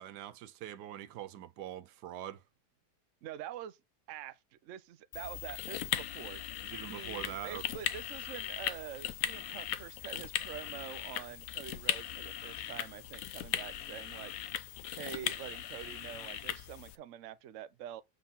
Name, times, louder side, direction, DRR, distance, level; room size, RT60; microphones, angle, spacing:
voice 1, 0.0-2.4 6.6-7.6, right 12 dB, 80° right, 1.2 m, -43 dB
voice 2, 3.2-3.8 4.1-6.4 6.9-14.3 15.0-18.0, right 11 dB, 60° right, 0.9 m, -46 dB
sound 1, 5.1-17.0, left 10 dB, 65° left, 1.1 m, -38 dB
8.0 x 4.3 x 5.5 m
omnidirectional pair, 1.8 m